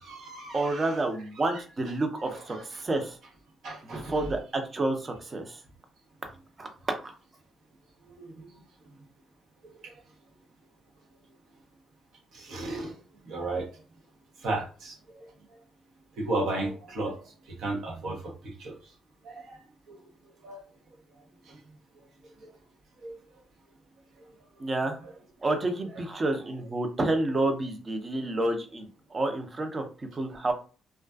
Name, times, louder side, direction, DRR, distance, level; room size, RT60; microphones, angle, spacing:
voice 1, 0.0-1.0 1.5-1.6 2.3-2.6 3.6-4.3 8.2-8.5 9.6-9.9 12.3-13.0 13.2-13.7 14.4-15.3 16.2-18.8 19.2-19.6 19.9-20.0 20.4-20.6 21.5-21.6 22.4-22.5 23.0-23.1 25.0-25.1, right 2 dB, 75° right, 1 dB, 0.8 m, -35 dB
voice 2, 0.5-3.2 3.8-5.6 6.6-7.1 24.6-25.0 25.4-30.5, right 2 dB, 30° right, 5 dB, 0.6 m, -29 dB
2.4 x 2.3 x 2.3 m, 0.36 s
cardioid pair, 90°, 0 cm